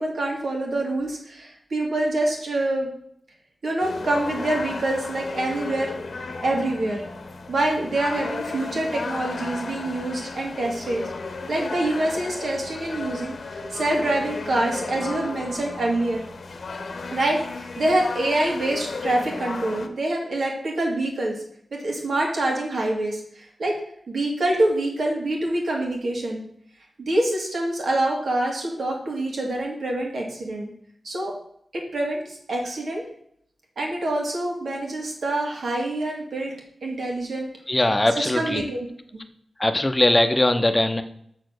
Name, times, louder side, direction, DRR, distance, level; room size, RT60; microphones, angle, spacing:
voice 1, 0.0-2.9 3.6-5.9 6.4-7.0 7.5-11.1 11.5-16.3 17.1-21.4 21.7-23.8 24.1-26.4 27.0-30.7 31.0-31.3 31.7-33.0 33.8-36.5 36.8-37.5 38.1-38.9, right 1 dB, 75° right, 0 dB, 2.3 m, -26 dB
sound 1, 3.8-19.9, left 3 dB, 70° left, 0.9 m, -34 dB
voice 2, 37.7-38.6 39.6-41.0, left 1 dB, 25° left, 8 dB, 0.8 m, -20 dB
6.7 x 4.3 x 6.5 m, 0.68 s
wide cardioid pair, 70°, 0 cm